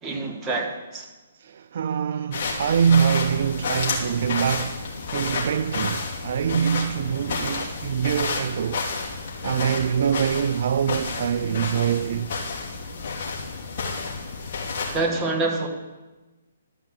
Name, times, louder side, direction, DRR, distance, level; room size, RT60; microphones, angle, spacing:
voice 1, 0.0-1.1 14.9-15.7, right 3 dB, 20° right, 1.8 m, -26 dB
voice 2, 1.4-4.9 5.1-8.8 9.4-12.4, right 8 dB, 55° right, 0.3 m, -24 dB
sound 1, 2.3-15.0, left 4 dB, 45° left, 2.9 m, -30 dB
12.0 x 5.7 x 7.6 m
figure-of-eight pair, 135°, 0 cm